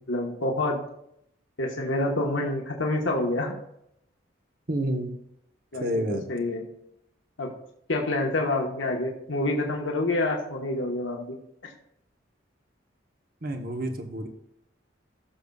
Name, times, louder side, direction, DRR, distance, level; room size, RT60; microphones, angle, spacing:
voice 1, 0.1-0.8 1.6-3.5 5.7-6.6 7.4-7.5 7.9-11.4, left 2 dB, 85° left, 1 dB, 1.4 m, -27 dB
voice 2, 4.7-5.1 5.7-6.2 13.4-14.3, right 1 dB, 45° right, 4 dB, 1.1 m, -29 dB
17.0 x 6.7 x 2.4 m, 0.76 s
head